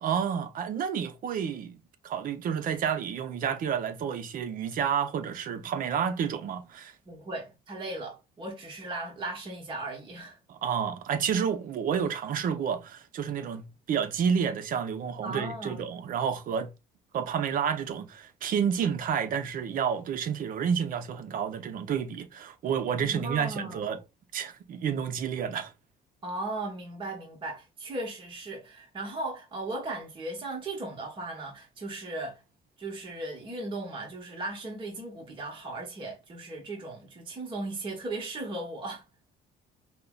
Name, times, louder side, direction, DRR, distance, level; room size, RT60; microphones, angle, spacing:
voice 1, 0.0-6.9 10.5-16.7 17.1-24.0 24.3-25.7, right 7 dB, 55° right, 0.7 m, -30 dB
voice 2, 7.1-10.4 15.2-15.8 23.0-23.9 26.2-32.4 32.8-39.0, right 2 dB, 30° right, 1.1 m, -37 dB
5.4 x 2.1 x 2.3 m
cardioid pair, 110°, 17 cm